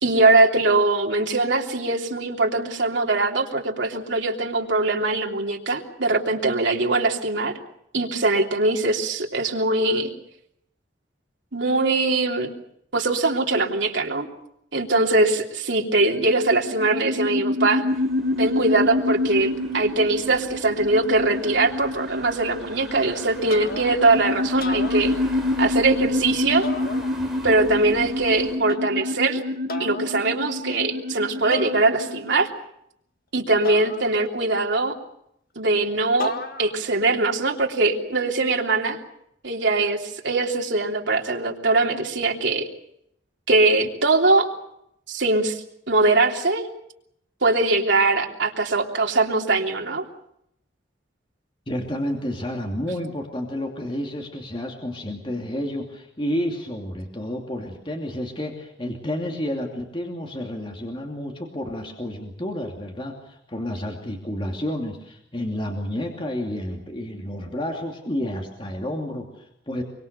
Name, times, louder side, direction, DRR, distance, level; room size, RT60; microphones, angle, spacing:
voice 1, 0.0-7.5 7.9-10.1 11.5-12.5 12.9-14.3 14.7-17.8 18.4-25.1 25.6-26.7 27.4-29.4 29.8-32.5 33.3-34.9 35.5-36.3 36.6-39.0 39.4-42.7 43.5-44.5 45.1-46.7 47.4-50.0, right 2 dB, 75° right, 1 dB, 3.2 m, -21 dB
sound 1, 16.0-32.3, left 2 dB, 50° right, 3.3 m, -27 dB
sound 2, 17.9-28.6, right 1 dB, ahead, 5.0 m, -42 dB
sound 3, 23.5-24.1 24.5-25.6 26.6-27.5 28.7-29.2 29.7-30.2 31.5-32.3 33.6-34.6 36.2-36.9, left 3 dB, 50° left, 1.6 m, -35 dB
voice 2, 51.7-69.8, left 1 dB, 25° left, 2 dB, 2.7 m, -30 dB
24.5 x 24.5 x 6.8 m, 0.75 s
head